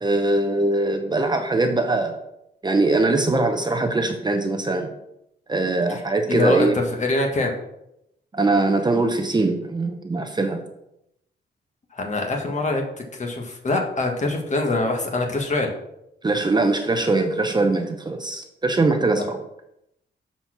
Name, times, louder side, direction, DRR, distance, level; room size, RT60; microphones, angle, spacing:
voice 1, 0.0-2.2 2.6-4.9 5.5-6.8 8.3-10.7 16.2-19.4, right 2 dB, 25° right, 5 dB, 0.7 m, -22 dB
voice 2, 6.3-7.5 11.9-12.8 13.1-15.7 19.2-19.3, left 2 dB, 40° left, 2 dB, 1.5 m, -24 dB
7.3 x 4.2 x 5.9 m, 0.83 s
cardioid pair, 115°, 19 cm